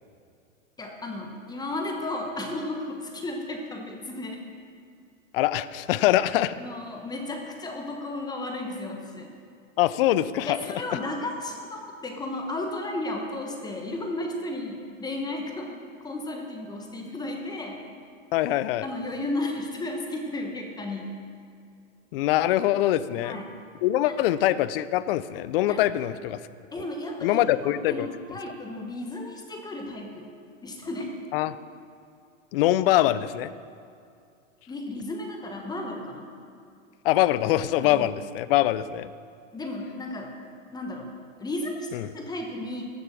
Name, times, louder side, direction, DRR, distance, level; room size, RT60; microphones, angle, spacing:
voice 1, 0.8-4.4 6.1-6.2 6.6-9.3 10.4-15.8 16.0-17.8 18.8-21.2 23.2-23.5 24.1-24.2 25.7-25.8 26.7-27.4 27.9-30.3 30.6-31.1 34.7-36.3 37.8-38.1 39.5-40.3 40.7-41.1 41.4-41.9 42.1-42.8, left 2 dB, 10° left, 2 dB, 1.1 m, -34 dB
voice 2, 5.3-6.5 9.8-10.8 18.3-18.9 22.1-23.4 23.8-26.4 27.2-28.1 31.3-31.6 32.5-33.5 37.0-39.1 41.9-42.1, left 14 dB, 45° left, 15 dB, 0.5 m, -23 dB
15.0 x 6.7 x 6.2 m, 2.4 s
hypercardioid pair, 130°, 39 cm